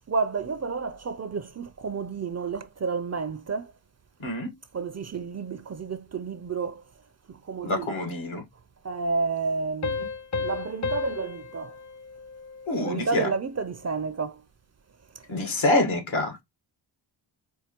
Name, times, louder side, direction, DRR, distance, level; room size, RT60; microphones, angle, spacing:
voice 1, 0.1-3.7 4.7-6.8 7.3-8.1 8.8-10.1 10.4-11.7 12.8-14.4, right 4 dB, 35° right, 0.5 m, -31 dB
voice 2, 4.2-4.5 7.6-8.4 12.7-13.3 15.3-16.4, left 2 dB, 70° left, 1.5 m, -26 dB
sound 1, 9.8-13.1, left 4 dB, 40° left, 0.6 m, -33 dB
4.6 x 2.2 x 2.9 m
cardioid pair, 50°, 48 cm